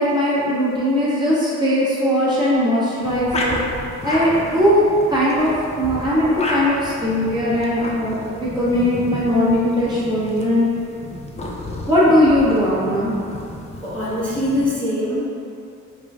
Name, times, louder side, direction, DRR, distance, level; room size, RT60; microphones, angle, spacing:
voice 1, 0.0-3.6 4.0-10.7 11.9-13.1, equal, 15° right, -11 dB, 1.3 m, -19 dB
sound 1, 3.0-14.7, left 1 dB, 20° left, 0.4 m, -31 dB
voice 2, 13.8-15.3, left 1 dB, 5° left, -14 dB, 1.0 m, -23 dB
4.9 x 2.4 x 2.4 m, 2.6 s
cardioid pair, 90°, 30 cm